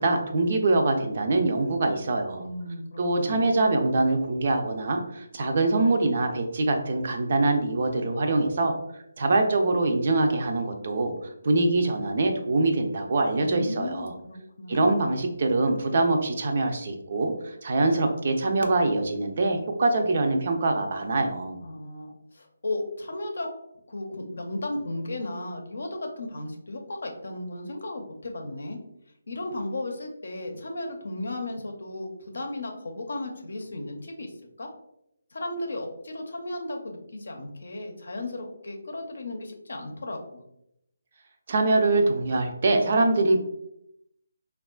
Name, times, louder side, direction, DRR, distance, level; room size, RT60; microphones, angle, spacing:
voice 1, 0.0-2.5 3.0-11.1 11.4-14.1 14.7-21.6 41.5-43.4, right 2 dB, 50° right, 4 dB, 0.4 m, -24 dB
voice 2, 2.4-3.4 13.4-14.9 21.6-23.5 23.9-28.8 29.3-34.3 34.6-34.7 35.3-40.4, left 2 dB, 65° left, 3 dB, 0.6 m, -35 dB
3.5 x 2.3 x 2.3 m, 0.80 s
figure-of-eight pair, 155°, 0 cm